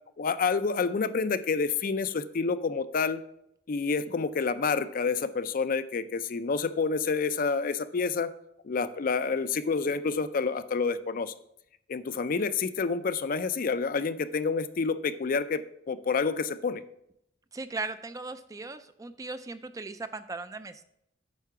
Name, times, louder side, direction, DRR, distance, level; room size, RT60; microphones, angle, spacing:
voice 1, 0.2-3.2 3.7-8.3 8.6-11.3 11.9-15.6 15.9-16.8, left 4 dB, 50° left, 12 dB, 0.4 m, -28 dB
voice 2, 17.5-20.9, right 3 dB, 20° right, 11 dB, 0.4 m, -38 dB
8.2 x 4.7 x 5.8 m, 0.76 s
head